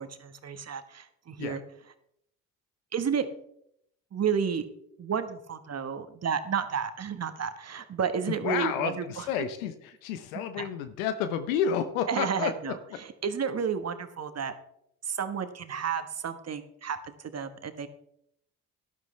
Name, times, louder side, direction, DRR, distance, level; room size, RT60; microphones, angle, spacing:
voice 1, 0.0-1.6 2.9-3.3 4.1-4.6 5.0-9.2 10.6-10.7 12.1-14.5 15.0-17.9, right 7 dB, 40° right, 10 dB, 1.4 m, -31 dB
voice 2, 8.4-12.7, left 8 dB, 85° left, 10 dB, 0.9 m, -30 dB
12.5 x 11.5 x 3.3 m, 0.74 s
hypercardioid pair, 55°, 40 cm